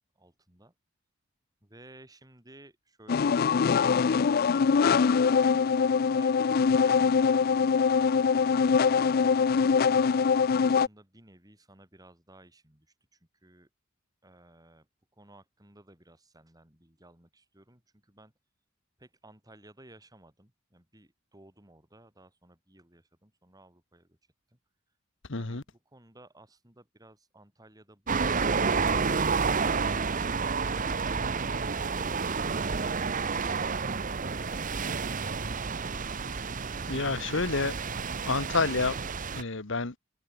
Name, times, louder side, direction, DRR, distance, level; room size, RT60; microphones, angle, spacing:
voice 1, 0.2-0.7 1.6-5.3 6.1-6.4 6.7-7.4 8.1-10.1 10.6-13.7 14.2-18.3 19.0-24.2 24.5-24.6 25.4-34.2, right 1 dB, 20° right, 4.0 m, -57 dB
sound 1, 3.1-10.9, left 5 dB, 45° left, 0.4 m, -23 dB
voice 2, 25.3-25.6 36.9-37.7 38.2-39.0 39.3-39.9, left 3 dB, 65° left, 1.5 m, -28 dB
sound 2, 28.1-39.4, right 5 dB, 40° right, 0.9 m, -30 dB
head